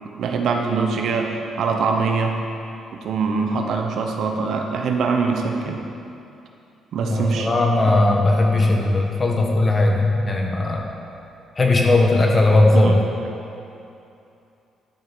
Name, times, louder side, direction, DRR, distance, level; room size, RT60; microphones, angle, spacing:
voice 1, 0.2-2.4 3.0-5.8 6.9-7.5 7.8-7.9 12.7-13.0, right 4 dB, 70° right, 3 dB, 0.9 m, -23 dB
voice 2, 7.0-10.9 11.6-12.9, left 2 dB, 30° left, 0 dB, 1.3 m, -18 dB
11.5 x 4.8 x 5.3 m, 2.7 s
cardioid pair, 90°, 0 cm